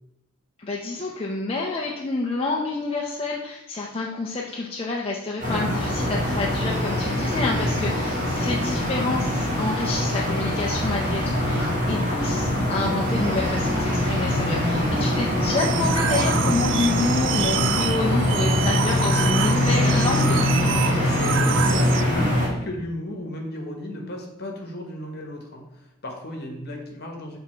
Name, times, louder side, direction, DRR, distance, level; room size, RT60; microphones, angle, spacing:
voice 1, 0.6-20.4, left 3 dB, 25° left, -3 dB, 0.5 m, -28 dB
sound 1, 5.4-22.5, left 1 dB, 35° right, 1.7 m, -23 dB
voice 2, 7.5-8.1 14.7-14.9 21.0-27.4, left 1 dB, 50° left, 2 dB, 1.2 m, -35 dB
sound 2, 15.6-22.0, right 10 dB, 55° right, 0.3 m, -28 dB
6.9 x 3.5 x 4.4 m, 0.91 s
head